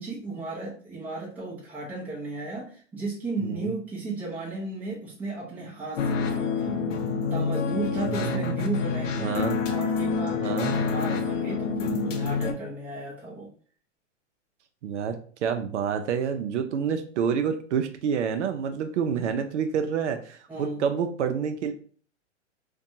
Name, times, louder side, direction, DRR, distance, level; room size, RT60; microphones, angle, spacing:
voice 1, 0.0-6.8 7.3-9.4 9.7-13.5 20.5-20.8, right 3 dB, 5° right, -5 dB, 0.5 m, -34 dB
voice 2, 3.4-3.7 8.1-8.6 9.1-9.6 10.4-10.8 14.8-21.7, right 7 dB, 65° right, 7 dB, 0.5 m, -28 dB
sound 1, 6.0-12.5, left 5 dB, 80° left, 0.7 m, -27 dB
2.6 x 2.2 x 2.7 m, 0.43 s
hypercardioid pair, 135°, 37 cm